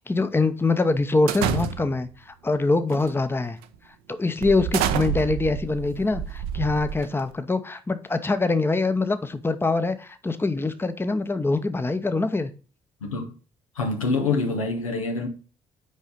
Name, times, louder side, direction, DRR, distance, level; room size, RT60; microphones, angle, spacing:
voice 1, 0.0-3.6 4.1-12.5, left 3 dB, 15° left, 0.8 m, -24 dB
sound 1, 1.3-2.1 2.9-3.2 3.6-3.7 4.4-7.3, right 9 dB, 65° right, 0.6 m, -28 dB
voice 2, 13.0-13.3 13.7-15.3, left 3 dB, 85° left, 0.9 m, -26 dB
6.3 x 5.0 x 5.3 m
figure-of-eight pair, 45°, 17 cm